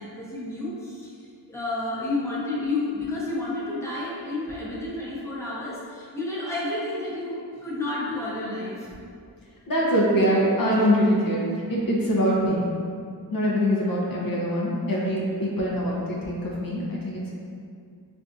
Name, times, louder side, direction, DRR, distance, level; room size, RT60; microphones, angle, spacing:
voice 1, 0.0-8.9, left 2 dB, 5° left, -7 dB, 0.6 m, -31 dB
voice 2, 9.7-11.4 11.7-12.6 13.3-17.3, equal, 55° left, -5 dB, 0.6 m, -23 dB
3.4 x 2.5 x 2.5 m, 2.3 s
wide cardioid pair, 80°, 41 cm